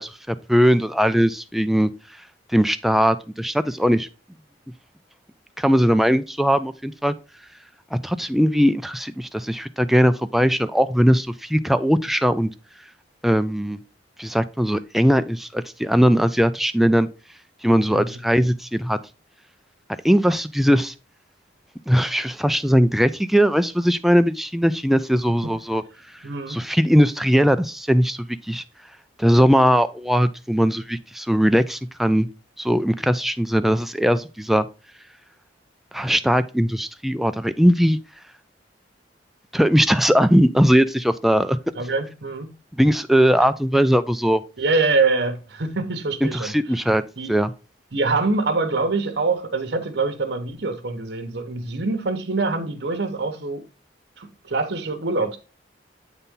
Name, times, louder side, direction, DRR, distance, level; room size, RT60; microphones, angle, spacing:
voice 1, 0.0-1.9 2.5-4.1 5.6-7.1 7.9-12.5 13.2-13.8 14.2-17.1 17.6-19.0 20.0-20.9 21.9-25.8 26.5-28.2 28.5-28.6 29.2-32.3 32.6-34.7 35.9-38.0 39.5-41.6 42.8-44.4 46.2-47.0 47.3-47.5, equal, ahead, 0.3 m, -19 dB
voice 2, 26.2-26.6 41.7-42.5 44.6-46.5 47.2-47.4 47.9-53.7 54.2-55.4, right 3 dB, 65° right, 1.0 m, -24 dB
8.0 x 4.1 x 3.7 m
head